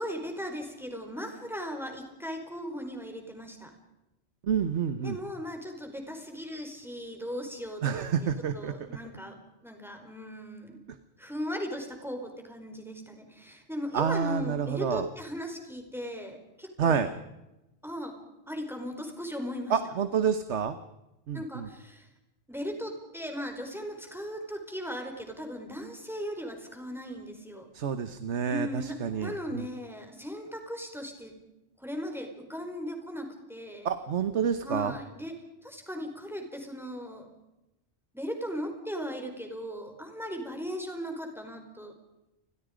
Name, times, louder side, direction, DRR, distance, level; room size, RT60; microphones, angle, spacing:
voice 1, 0.0-3.7 5.0-9.3 9.6-10.8 11.2-17.0 17.8-18.1 18.5-19.8 21.3-22.1 22.5-27.7 28.4-31.3 31.8-33.9 34.6-35.3 35.6-37.3 38.1-41.9, equal, ahead, 4 dB, 4.5 m, -38 dB
voice 2, 4.4-5.2 7.8-8.9 13.9-15.1 16.8-17.1 19.7-20.8 21.3-21.7 27.7-29.7 33.8-34.9, right 7 dB, 85° right, 11 dB, 1.4 m, -28 dB
29.5 x 22.5 x 5.1 m, 0.97 s
omnidirectional pair, 1.1 m